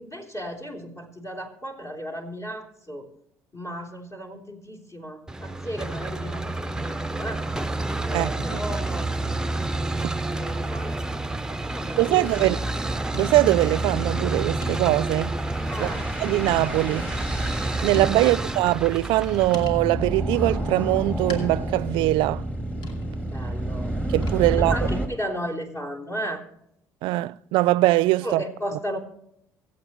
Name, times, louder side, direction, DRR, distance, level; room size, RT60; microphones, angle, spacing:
voice 1, 0.0-3.1 3.5-7.4 8.0-9.2 10.2-11.0 11.6-12.7 15.7-16.1 18.2-18.4 23.3-23.9 24.6-26.4 28.2-29.0, equal, 40° left, 3.4 m, -35 dB
sound 1, 5.3-19.6, right 2 dB, 10° right, 0.6 m, -29 dB
voice 2, 8.1-8.6 10.0-10.1 12.0-12.6 13.2-15.4 15.8-15.9 16.2-17.1 17.8-22.4 24.1-24.8 27.0-28.4, right 18 dB, 75° right, 0.4 m, -22 dB
sound 2, 9.9-10.0 11.2-25.1, right 1 dB, 15° left, 2.7 m, -31 dB
sound 3, 13.1-13.7 14.2-14.3 14.6-15.2 16.5-16.8 17.3-17.4 17.9-18.6 19.5-20.0 21.3-21.9 22.8-23.3 24.2-24.7, left 2 dB, 65° left, 2.6 m, -38 dB
24.5 x 8.3 x 3.1 m
supercardioid pair, 65°, 9 cm